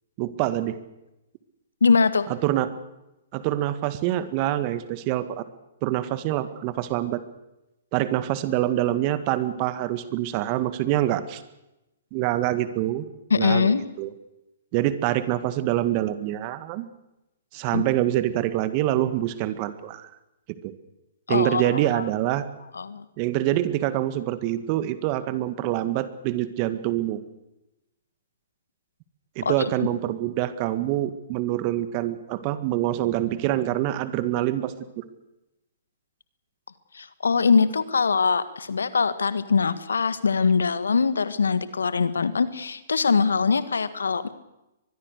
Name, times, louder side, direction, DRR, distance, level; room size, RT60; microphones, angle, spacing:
voice 1, 0.2-0.8 2.3-2.7 3.3-5.4 5.8-7.2 7.9-11.4 12.1-13.0 13.4-13.7 14.0-14.1 14.7-16.9 17.5-20.1 20.6-20.7 21.3-22.4 23.2-27.2 29.4-35.0, right 14 dB, 40° right, 12 dB, 1.8 m, -25 dB
voice 2, 1.8-2.3 13.3-13.8 17.7-17.8 21.3-22.0 22.7-23.1 29.4-29.5 36.9-44.3, left 5 dB, 80° left, 14 dB, 1.7 m, -22 dB
24.0 x 21.0 x 6.6 m, 0.93 s
figure-of-eight pair, 120°, 0 cm